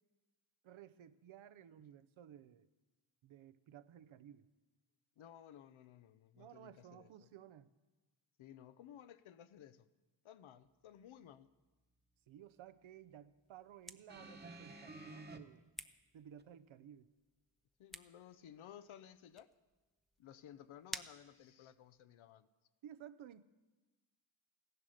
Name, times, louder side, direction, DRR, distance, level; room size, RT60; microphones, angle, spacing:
voice 1, 0.6-2.7 3.2-4.5 6.4-7.7 12.3-15.7 16.1-17.1 22.8-23.4, right 10 dB, 80° right, 14 dB, 0.7 m, -56 dB
voice 2, 5.2-7.3 8.4-9.9 10.2-11.5 17.8-19.5 20.2-22.5, left 10 dB, 85° left, 14 dB, 0.7 m, -57 dB
sound 1, 13.4-22.1, equal, ahead, 0.5 m, -55 dB
sound 2, 14.1-15.4 16.4-16.5, right 2 dB, 20° right, 1.0 m, -51 dB
15.5 x 11.0 x 6.5 m, 1.2 s
wide cardioid pair, 100°, 47 cm